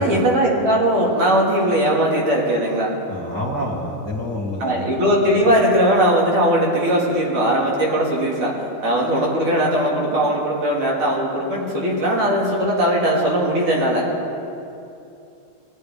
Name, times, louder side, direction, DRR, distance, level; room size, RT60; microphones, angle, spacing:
voice 1, 0.0-2.9 4.6-8.5 8.8-14.1, right 1 dB, 90° right, -3 dB, 2.8 m, -19 dB
voice 2, 3.1-4.8, left 1 dB, 10° left, -4 dB, 2.0 m, -27 dB
19.0 x 9.1 x 3.4 m, 2.7 s
omnidirectional pair, 2.3 m